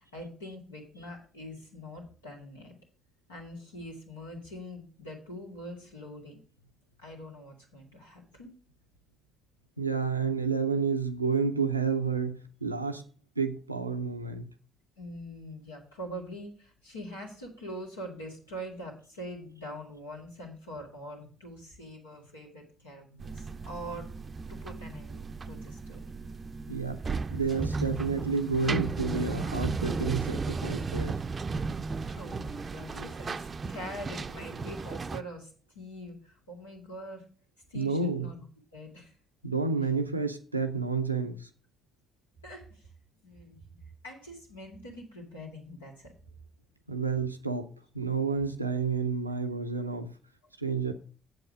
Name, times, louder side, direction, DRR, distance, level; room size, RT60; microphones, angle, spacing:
voice 1, 0.1-2.8 3.3-6.4 7.0-8.6 15.0-24.1 24.5-26.2 32.0-35.5 35.8-37.2 37.7-38.4 38.7-39.1 39.8-39.9 42.4-42.9 43.2-46.1, equal, 85° left, -2 dB, 2.0 m, -44 dB
voice 2, 9.8-13.0 13.4-14.5 26.7-27.0 27.3-31.2 37.7-38.3 39.4-41.5 46.9-47.7 47.9-50.1 50.6-50.9, right 4 dB, 90° right, 7 dB, 0.5 m, -30 dB
sound 1, 23.2-35.2, right 4 dB, 35° right, 0.5 m, -35 dB
7.7 x 7.7 x 5.0 m, 0.41 s
figure-of-eight pair, 40°, 0 cm